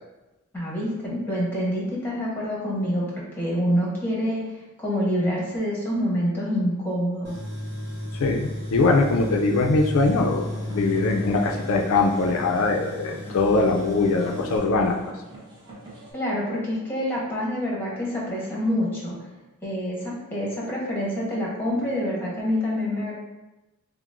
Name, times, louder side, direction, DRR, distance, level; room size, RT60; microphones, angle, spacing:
voice 1, 0.5-3.1 3.3-4.4 4.8-7.3 16.1-19.2 19.6-23.1, equal, 10° left, -5 dB, 0.9 m, -26 dB
Tools, 7.2-14.6, left 1 dB, 45° right, 1.0 m, -34 dB
voice 2, 8.1-10.5 10.7-15.0, left 3 dB, 75° left, 2 dB, 0.4 m, -22 dB
sound 1, 9.9-16.1, right 1 dB, 20° right, 0.9 m, -43 dB
5.8 x 2.0 x 2.5 m, 1.0 s
head